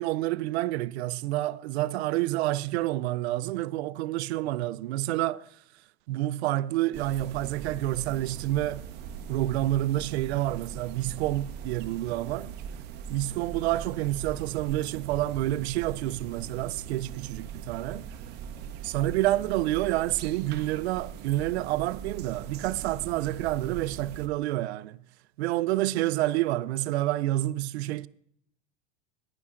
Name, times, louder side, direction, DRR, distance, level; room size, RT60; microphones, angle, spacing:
voice 1, 0.0-5.5 6.1-8.9 9.3-12.5 13.1-18.1 18.8-25.0 25.4-28.1, right 16 dB, 80° right, 0.5 m, -28 dB
sound 1, 6.9-24.3, right 7 dB, 30° right, 0.8 m, -41 dB
15.5 x 11.0 x 2.5 m
supercardioid pair, 150°, 32 cm